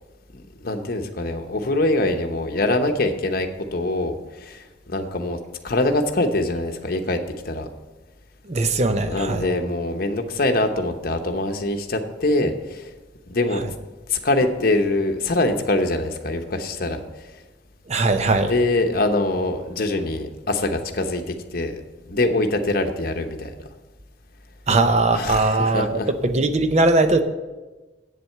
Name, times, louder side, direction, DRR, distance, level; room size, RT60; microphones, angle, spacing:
voice 1, 0.3-5.4 5.6-7.2 7.4-7.7 9.1-12.9 13.3-13.6 14.1-17.0 18.4-23.5 25.1-26.1, left 2 dB, 50° left, 5 dB, 0.9 m, -24 dB
voice 2, 8.4-9.5 13.5-13.6 17.9-18.5 24.7-27.2, right 2 dB, 35° right, 9 dB, 0.6 m, -20 dB
8.2 x 7.6 x 6.7 m, 1.2 s
head